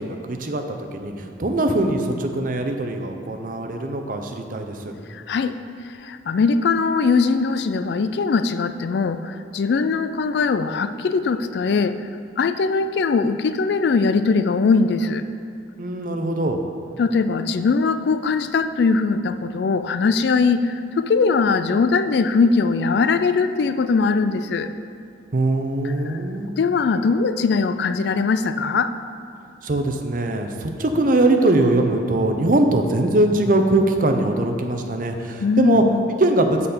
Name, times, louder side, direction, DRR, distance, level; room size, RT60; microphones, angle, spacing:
voice 1, 0.0-4.9 15.8-16.6 25.3-26.5 29.6-35.8 36.2-36.7, right 2 dB, 45° right, 5 dB, 0.6 m, -21 dB
voice 2, 5.1-5.6 6.0-12.0 12.4-15.2 17.0-24.7 26.1-26.2 26.6-28.9 35.4-36.1, left 4 dB, 65° left, 11 dB, 0.3 m, -20 dB
7.6 x 4.1 x 6.8 m, 2.5 s
head